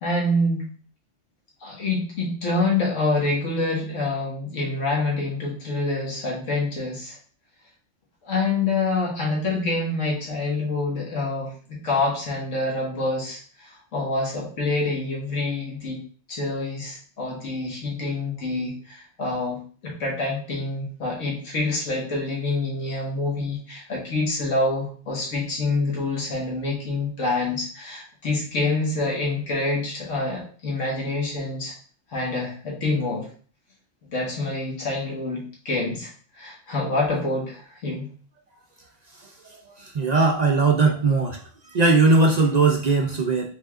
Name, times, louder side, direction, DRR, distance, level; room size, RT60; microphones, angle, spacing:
voice 1, 0.0-0.7 1.6-7.2 8.2-16.0 16.3-31.7 32.1-33.3 34.1-36.1 36.4-38.1, left 2 dB, 80° left, -2 dB, 1.8 m, -26 dB
voice 2, 39.8-41.4 41.7-43.5, right 3 dB, 55° right, 1 dB, 0.4 m, -19 dB
5.0 x 3.5 x 2.4 m, 0.43 s
omnidirectional pair, 1.3 m